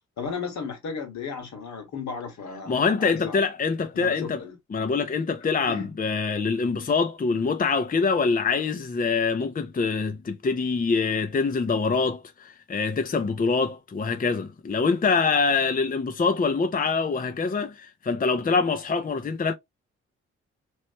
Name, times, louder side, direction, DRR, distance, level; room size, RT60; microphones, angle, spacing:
voice 1, 0.2-3.4 3.9-4.6 5.7-5.9, left 5 dB, 65° left, 1.8 m, -35 dB
voice 2, 2.7-4.4 4.7-19.5, left 4 dB, 30° left, 0.7 m, -25 dB
3.2 x 3.1 x 2.9 m
hypercardioid pair, 45°, 30 cm